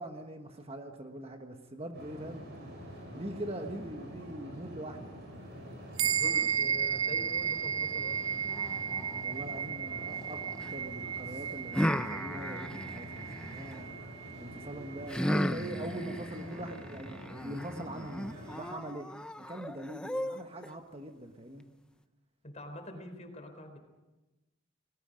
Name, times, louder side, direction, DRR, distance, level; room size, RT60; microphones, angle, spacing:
voice 1, 0.0-2.5 3.1-5.1 6.0-6.5 9.2-13.9 14.4-18.3 18.5-19.1 19.4-21.7, right 1 dB, 25° right, 4 dB, 1.3 m, -42 dB
sound 1, 1.9-18.6, equal, 50° right, 7.3 m, -46 dB
voice 2, 6.0-8.6 22.4-23.8, left 1 dB, 30° left, 6 dB, 3.7 m, -46 dB
sound 2, 6.0-15.7, right 8 dB, 70° right, 0.9 m, -34 dB
sound 3, 8.5-10.7 11.7-13.8 15.1-20.7, equal, 5° left, 0.6 m, -36 dB
29.5 x 20.5 x 5.2 m, 1.1 s
head